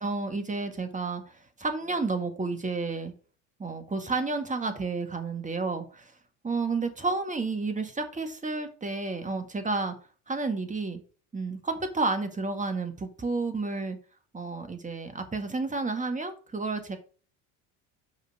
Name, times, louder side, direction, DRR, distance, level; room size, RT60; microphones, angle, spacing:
voice 1, 0.0-1.2 1.6-3.1 3.6-6.1 6.4-10.0 10.3-11.0 11.3-14.0 14.3-17.0, right 3 dB, 20° right, 8 dB, 1.7 m, -31 dB
6.9 x 5.1 x 4.9 m, 0.39 s
hypercardioid pair, 75°, 41 cm